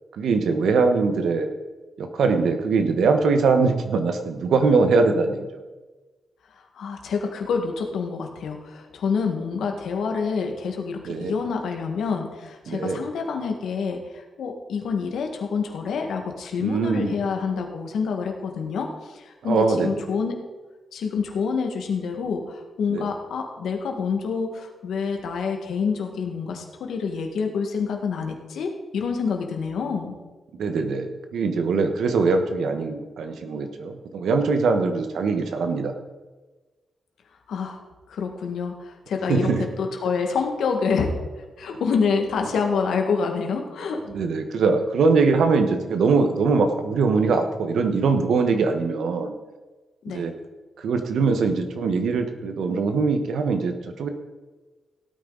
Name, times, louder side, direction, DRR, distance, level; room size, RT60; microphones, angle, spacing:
voice 1, 0.1-1.5 2.0-5.6 11.0-11.3 12.7-13.0 16.6-17.1 19.4-20.0 22.9-23.1 30.6-35.9 39.3-39.7 44.1-49.3 50.1-50.3 50.8-54.1, right 4 dB, 85° right, 7 dB, 1.3 m, -22 dB
voice 2, 6.5-20.3 20.9-30.1 37.5-37.8 38.1-39.5 39.8-41.1 41.6-44.0 50.0-50.3, left 5 dB, 85° left, 3 dB, 1.8 m, -27 dB
17.0 x 9.0 x 4.0 m, 1.2 s
cardioid pair, 90°, 0 cm